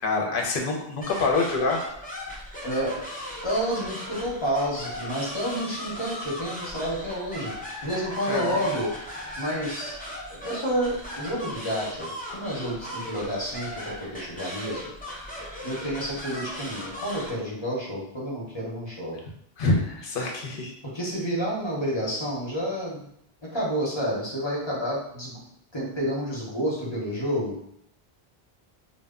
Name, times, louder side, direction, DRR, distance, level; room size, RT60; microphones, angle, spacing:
voice 1, 0.0-1.8 8.3-8.6 19.6-20.7, left 3 dB, 65° left, 1 dB, 0.7 m, -26 dB
sound 1, 1.0-17.3, equal, 15° left, 0.3 m, -37 dB
voice 2, 2.6-2.9 3.4-7.5 7.8-8.9 9.4-10.0 10.3-14.8 15.6-19.2 20.9-23.1 23.4-25.4 25.7-27.6, equal, 30° left, -6 dB, 0.7 m, -29 dB
2.1 x 2.0 x 3.5 m, 0.72 s
omnidirectional pair, 1.0 m